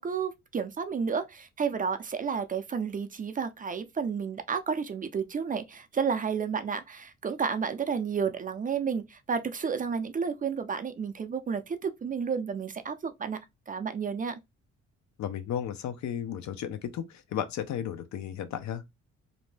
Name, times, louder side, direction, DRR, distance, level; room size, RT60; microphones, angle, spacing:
voice 1, 0.0-13.4 13.7-14.4, right 6 dB, 30° right, 0.4 m, -31 dB
voice 2, 15.2-17.1 17.3-19.0, left 9 dB, 65° left, 0.6 m, -34 dB
2.6 x 2.1 x 3.1 m
cardioid pair, 90°, 30 cm